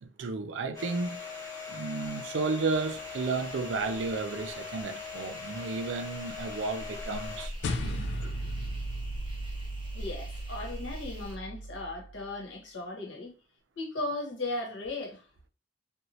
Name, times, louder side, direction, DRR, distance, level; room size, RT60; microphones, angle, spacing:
voice 1, 0.0-8.3, right 4 dB, 80° right, 0.4 m, -33 dB
Domestic sounds home sounds, 0.7-7.5, left 5 dB, 20° left, 0.9 m, -41 dB
sound 1, 2.7-11.4, equal, 25° right, 0.6 m, -45 dB
sound 2, 7.6-12.3, equal, 65° left, 0.4 m, -36 dB
voice 2, 9.9-13.3 13.8-15.2, left 2 dB, 85° left, 1.0 m, -36 dB
3.0 x 2.2 x 2.7 m
head